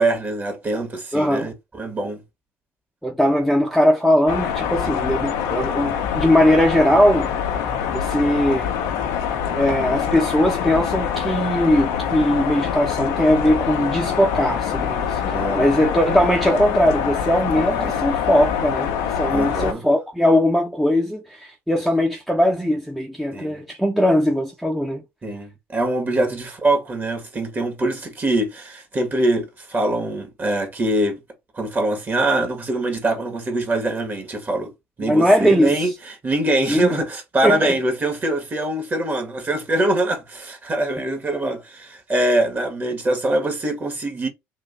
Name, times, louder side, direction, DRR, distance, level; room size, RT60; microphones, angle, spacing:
voice 1, 0.0-2.2 15.2-15.7 17.8-18.0 19.3-19.8 23.3-23.6 25.2-31.2 31.6-34.7 35.0-44.3, right 1 dB, 30° right, 1.8 m, -23 dB
voice 2, 1.1-1.5 3.0-7.4 7.9-8.7 9.5-25.0 35.0-35.9 36.7-36.9 37.4-37.7, equal, ahead, 0.9 m, -20 dB
sound 1, 4.3-19.7, left 8 dB, 85° left, 0.9 m, -24 dB
3.7 x 2.8 x 4.0 m
supercardioid pair, 80°, 6 cm